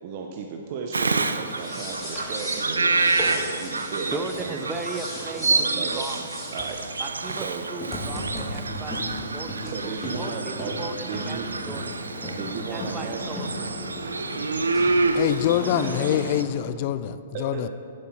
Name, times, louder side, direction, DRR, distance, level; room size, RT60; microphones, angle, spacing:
voice 1, 0.0-4.8 5.3-6.0 6.5-6.8 7.3-7.7 9.6-10.7 11.0-11.5 11.8-11.9 12.3-13.2 15.5-15.6 17.3-17.7, right 5 dB, 45° right, 2 dB, 0.8 m, -35 dB
Bird vocalization bird call bird song, 0.9-16.4, right 3 dB, 90° right, 0.5 m, -28 dB
sound 1, 1.5-16.7, left 1 dB, 15° left, 2.4 m, -36 dB
voice 2, 4.1-6.2 7.0-10.9 11.2-11.9 12.6-13.8, right 3 dB, 15° right, 4 dB, 0.6 m, -37 dB
voice 3, 15.1-17.7, left 11 dB, 45° left, 14 dB, 0.4 m, -25 dB
9.5 x 7.8 x 4.4 m, 2.4 s
hypercardioid pair, 125°, 0 cm